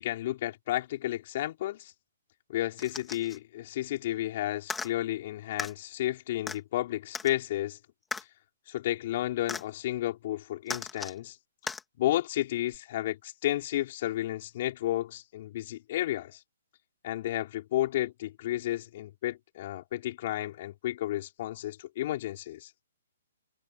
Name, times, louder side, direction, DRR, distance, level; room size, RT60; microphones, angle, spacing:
voice 1, 0.0-1.9 2.5-7.8 8.7-11.4 12.0-16.4 17.0-22.7, left 14 dB, 40° left, 4.3 m, -32 dB
sound 1, 2.8-3.4 4.6-4.9 5.6-5.7 6.5-6.6 7.1-7.3 8.1-8.2 9.5-9.6 10.7-11.2 11.7-11.8 12.7-12.8, left 5 dB, 5° left, 2.1 m, -36 dB
hypercardioid pair, 170°, 0 cm